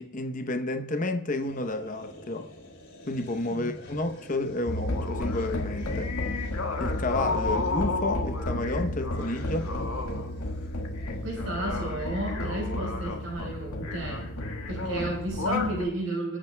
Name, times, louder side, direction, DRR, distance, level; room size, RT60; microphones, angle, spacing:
voice 1, 0.0-2.5 3.1-6.1 6.8-9.7, left 2 dB, 35° left, 0.8 m, -31 dB
sound 1, 1.4-11.9, left 1 dB, 55° left, 3.3 m, -48 dB
sound 2, 4.7-15.8, left 2 dB, 85° left, 1.8 m, -31 dB
voice 2, 11.2-14.3 14.7-16.4, right 1 dB, 65° right, 4.7 m, -32 dB
26.5 x 9.0 x 2.3 m
head